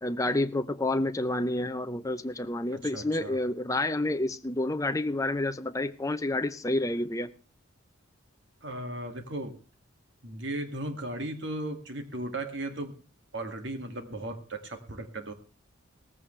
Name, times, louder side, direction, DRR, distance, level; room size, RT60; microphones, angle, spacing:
voice 1, 0.0-7.3, left 2 dB, 15° left, 0.6 m, -29 dB
voice 2, 2.9-3.4 8.6-9.6 10.2-12.9 13.3-15.3, right 1 dB, 55° right, 2.2 m, -36 dB
18.0 x 15.0 x 3.3 m
head